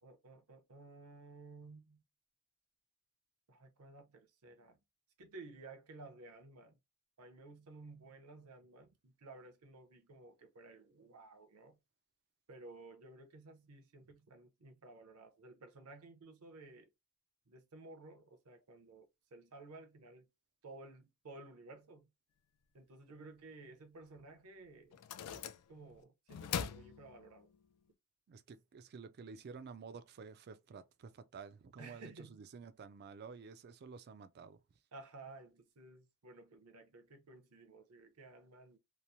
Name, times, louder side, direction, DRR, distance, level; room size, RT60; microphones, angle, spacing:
voice 1, 0.0-2.0 3.5-4.8 5.2-6.8 7.2-11.8 12.5-16.9 17.5-20.3 20.6-22.1 22.7-25.0 25.3-27.5 31.8-32.4 34.9-38.8, right 3 dB, 75° right, 0.7 m, -55 dB
sound 1, 24.2-24.3 24.9-26.0 26.3-27.6, left 8 dB, 80° left, 0.4 m, -42 dB
voice 2, 28.3-34.6, right 5 dB, 45° right, 0.4 m, -51 dB
2.9 x 2.0 x 2.6 m
head